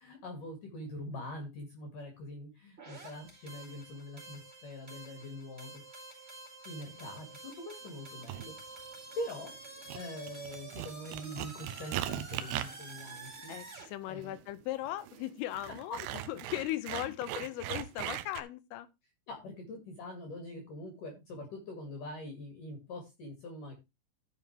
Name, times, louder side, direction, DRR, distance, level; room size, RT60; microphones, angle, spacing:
voice 1, 0.0-5.8 6.6-8.9 9.2-9.5 9.9-13.8 14.0-14.4 15.8-16.2 16.9-17.1 19.3-23.8, left 1 dB, 50° left, 3.0 m, -44 dB
sound 1, 2.8-13.9, right 3 dB, 10° right, 4.5 m, -49 dB
sound 2, 8.3-8.5 9.2-9.6 9.9-18.4, right 13 dB, 85° right, 2.5 m, -40 dB
voice 2, 13.5-18.9, left 15 dB, 80° left, 3.3 m, -38 dB
14.5 x 6.9 x 3.2 m
omnidirectional pair, 5.9 m